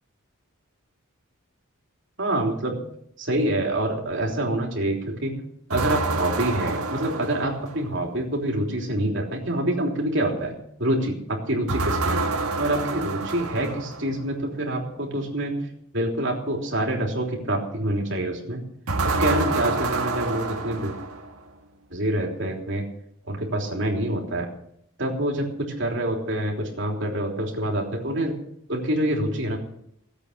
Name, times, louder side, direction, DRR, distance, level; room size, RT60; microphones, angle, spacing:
voice 1, 2.2-2.8 3.2-5.4 5.7-12.2 12.6-15.7 15.9-18.6 19.2-21.0 21.9-22.8 23.3-24.5 25.0-28.4 28.7-29.6, right 1 dB, 55° right, 0 dB, 3.4 m, -26 dB
sound 1, 5.7-8.0 11.7-14.2 18.9-21.5, right 3 dB, 85° right, 1.6 m, -27 dB
17.0 x 8.3 x 6.7 m, 0.74 s
head